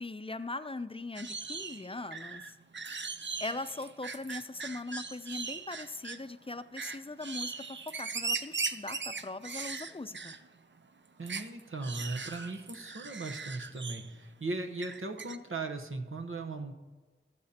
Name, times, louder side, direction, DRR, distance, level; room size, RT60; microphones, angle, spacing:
voice 1, 0.0-2.6 3.4-10.3, left 2 dB, 25° left, 12 dB, 0.4 m, -40 dB
sound 1, 1.2-6.3 6.8-10.5 10.8-10.9 11.3-14.2 14.8-15.4, right 4 dB, 65° right, 0.5 m, -39 dB
voice 2, 11.2-16.7, right 3 dB, 85° right, 5 dB, 0.9 m, -38 dB
20.0 x 6.7 x 2.8 m, 1.4 s
wide cardioid pair, 55°, 21 cm